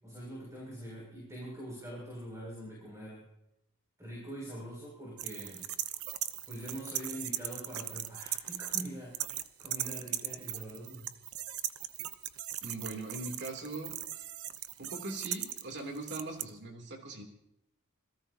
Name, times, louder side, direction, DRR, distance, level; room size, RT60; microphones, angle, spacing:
voice 1, 0.0-3.2 4.0-5.7 6.5-11.1, equal, 15° right, -4 dB, 6.7 m, -44 dB
sound 1, 5.2-8.9 9.1-16.4, right 13 dB, 85° right, 0.8 m, -38 dB
voice 2, 12.6-13.9 14.8-17.2, right 2 dB, 55° right, 2 dB, 3.1 m, -40 dB
27.5 x 17.0 x 2.9 m, 0.83 s
head